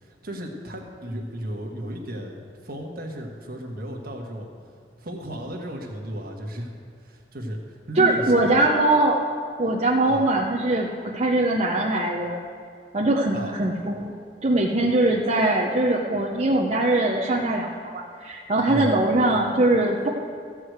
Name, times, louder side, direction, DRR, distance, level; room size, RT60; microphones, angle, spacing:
voice 1, 0.0-4.5 5.0-6.7 7.0-8.4 10.1-10.3 13.3-13.5 18.7-18.9, equal, 55° right, 1 dB, 1.5 m, -34 dB
voice 2, 8.0-9.2 9.6-12.4 12.9-20.1, right 2 dB, 35° right, -4 dB, 0.8 m, -22 dB
14.0 x 4.8 x 8.0 m, 2.1 s
head